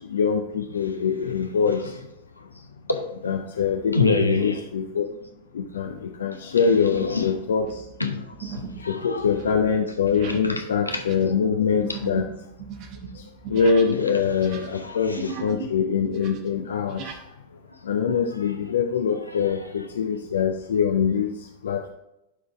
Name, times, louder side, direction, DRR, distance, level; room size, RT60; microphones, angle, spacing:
voice 1, 0.1-1.9 3.2-5.1 5.5-7.8 8.9-12.3 13.5-17.0 17.9-21.3 21.6-21.9, left 6 dB, 65° left, 0.5 m, -23 dB
voice 2, 2.9-3.3 3.9-4.6 7.0-7.3 8.0-9.3 10.4-11.0 14.7-15.3, left 3 dB, 85° left, 0.9 m, -27 dB
sound 1, 5.0-5.3 5.9-6.1 6.7-7.2 7.4-14.0 14.3-15.7 16.0-17.2, right 6 dB, 40° right, 0.9 m, -38 dB
11.5 x 3.9 x 3.4 m
figure-of-eight pair, 90°, 0 cm